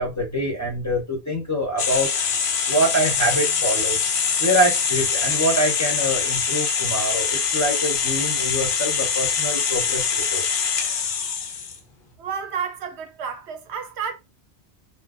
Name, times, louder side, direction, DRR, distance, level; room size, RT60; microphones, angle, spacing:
voice 1, 0.0-2.1 2.7-4.0 4.4-10.4, equal, 20° left, 0.7 m, -25 dB
sound 1, 1.8-11.8, left 6 dB, 60° left, 0.7 m, -23 dB
voice 2, 12.2-14.1, right 6 dB, 75° right, 0.9 m, -30 dB
3.3 x 2.1 x 2.4 m
omnidirectional pair, 1.1 m